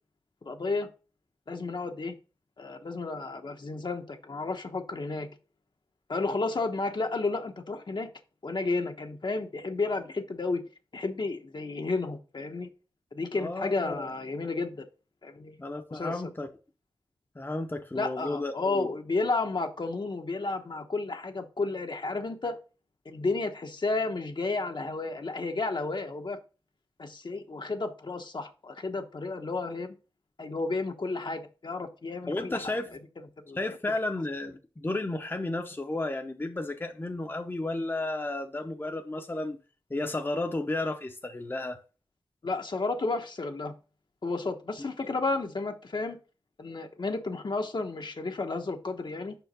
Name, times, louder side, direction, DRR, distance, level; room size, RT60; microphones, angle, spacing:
voice 1, 0.4-0.9 1.5-2.1 2.6-5.3 6.1-8.1 8.4-10.6 10.9-12.7 13.1-14.9 15.2-15.5 15.9-16.2 17.9-22.6 23.0-26.4 27.0-29.9 30.4-32.7 33.5-33.6 42.4-43.7 44.2-46.2 46.6-49.4, left 3 dB, 60° left, 1.0 m, -32 dB
voice 2, 13.3-14.1 15.6-16.5 17.4-18.9 32.3-33.0 33.5-39.6 39.9-41.8 44.8-44.9, left 2 dB, 25° left, 0.7 m, -33 dB
5.7 x 4.6 x 5.3 m
wide cardioid pair, 70°, 9 cm